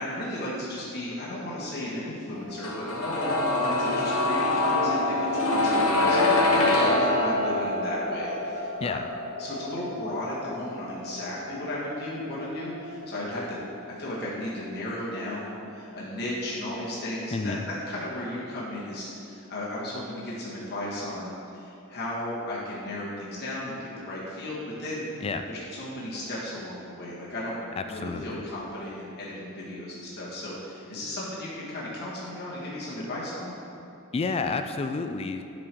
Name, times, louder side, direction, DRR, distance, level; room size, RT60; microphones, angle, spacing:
voice 1, 0.0-9.1 9.4-13.6 14.0-25.1 25.5-33.5, left 1 dB, 50° left, -7 dB, 1.7 m, -35 dB
sound 1, 2.6-14.5 14.7-14.8, left 2 dB, 70° left, 1.1 m, -26 dB
voice 2, 17.3-17.6 25.2-25.5 27.8-28.4 34.1-35.4, left 4 dB, 25° left, 8 dB, 0.3 m, -30 dB
7.9 x 6.1 x 4.7 m, 2.9 s
head